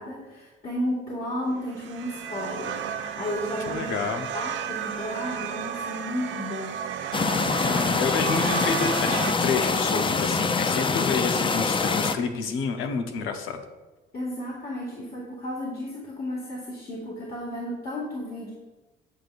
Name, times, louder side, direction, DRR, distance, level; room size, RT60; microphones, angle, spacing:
voice 1, 0.0-4.1 4.3-6.8 14.1-18.5, left 1 dB, 50° left, -5 dB, 2.1 m, -33 dB
sound 1, 1.6-9.3, right 8 dB, 75° right, 0.6 m, -33 dB
voice 2, 3.7-4.3 7.6-13.6, left 5 dB, 90° left, 6 dB, 0.8 m, -29 dB
sound 2, 7.1-12.1, left 4 dB, 25° left, 0.5 m, -24 dB
8.6 x 7.9 x 2.5 m, 1.1 s
cardioid pair, 90°, 20 cm